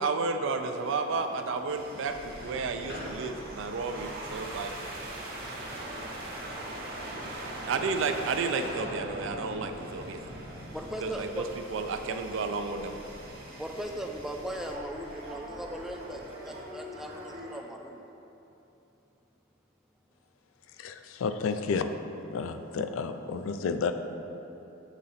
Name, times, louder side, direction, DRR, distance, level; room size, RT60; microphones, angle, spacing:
voice 1, 0.0-4.7 7.7-10.2 11.0-11.4 11.7-13.0, right 4 dB, 70° right, 7 dB, 0.4 m, -32 dB
sound 1, 0.6-17.6, right 1 dB, 50° right, 1.1 m, -42 dB
sound 2, 2.0-16.2, equal, 55° left, 1.2 m, -49 dB
voice 2, 10.7-11.5 13.6-18.0, equal, ahead, 2 dB, 0.4 m, -38 dB
voice 3, 20.8-21.9 22.3-23.9, left 5 dB, 85° left, 9 dB, 0.4 m, -31 dB
7.3 x 3.8 x 4.1 m, 3.0 s
head